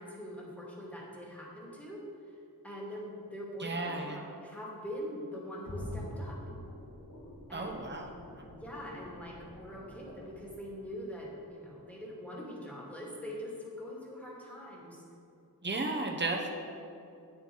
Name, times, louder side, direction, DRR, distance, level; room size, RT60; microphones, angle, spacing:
voice 1, 0.0-2.3 2.6-6.4 7.5-8.0 8.6-15.0, equal, 5° left, -4 dB, 2.1 m, -43 dB
voice 2, 3.6-4.2 7.5-8.1 15.6-16.5, right 2 dB, 30° right, 1 dB, 0.9 m, -34 dB
sound 1, 5.6-11.5 11.8-11.9, left 1 dB, 80° left, 2.0 m, -46 dB
9.3 x 7.2 x 3.9 m, 2.7 s
wide cardioid pair, 55°, 37 cm